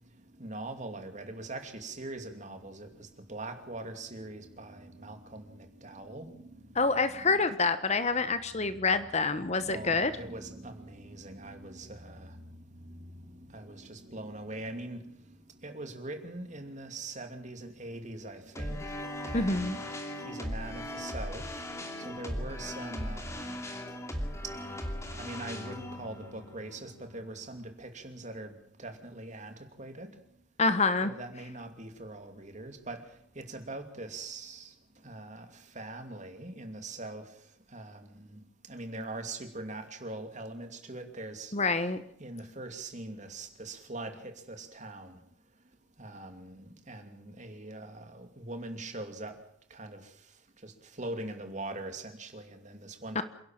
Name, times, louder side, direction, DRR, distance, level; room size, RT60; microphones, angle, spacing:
voice 1, 0.4-6.5 6.8-7.4 8.5-9.1 9.6-15.1 15.6-18.8 19.2-19.9 20.2-21.4 22.0-23.6 24.4-24.5 24.9-28.5 28.8-30.1 31.0-33.0 33.3-34.7 35.0-37.3 37.7-38.4 38.7-41.5 42.2-45.2 46.0-49.3 49.7-50.1 50.6-53.2, right 2 dB, 35° right, 2.7 m, -42 dB
voice 2, 6.7-10.1 19.3-19.8 30.6-31.1 41.5-42.0 53.1-53.2, left 3 dB, 35° left, 1.1 m, -27 dB
sound 1, 18.6-27.7, left 1 dB, 15° left, 2.7 m, -38 dB
27.5 x 11.5 x 9.1 m
head